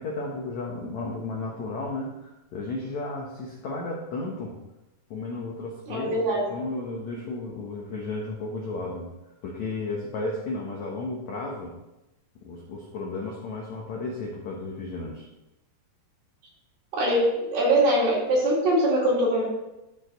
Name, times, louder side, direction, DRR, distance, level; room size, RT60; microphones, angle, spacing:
voice 1, 0.0-4.5 5.1-6.1 6.5-9.1 9.4-11.7 12.4-15.2, left 2 dB, 70° left, -2 dB, 1.7 m, -33 dB
voice 2, 5.9-6.4 16.9-19.5, right 1 dB, 60° right, -5 dB, 4.2 m, -22 dB
14.0 x 4.7 x 3.9 m, 0.94 s
omnidirectional pair, 4.7 m